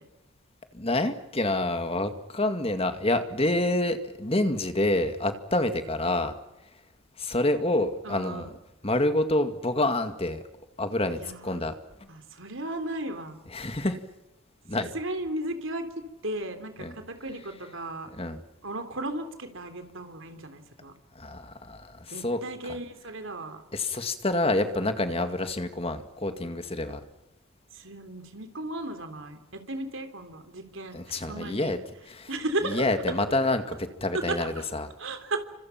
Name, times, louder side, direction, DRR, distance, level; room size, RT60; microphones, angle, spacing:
voice 1, 0.7-6.3 7.2-8.5 8.8-10.4 10.8-11.7 13.5-14.0 14.7-14.9 16.8-16.9 18.2-18.4 21.2-22.4 23.7-27.0 30.9-31.8 32.1-32.3 32.7-34.9, left 2 dB, 30° left, 8 dB, 2.1 m, -27 dB
voice 2, 8.0-8.5 11.2-11.6 12.1-13.4 14.7-18.1 18.6-20.9 22.1-23.7 27.7-31.7 32.3-32.9 34.1-34.7 35.0-35.5, right 2 dB, 70° right, 7 dB, 3.5 m, -35 dB
30.0 x 25.5 x 5.9 m, 0.96 s
head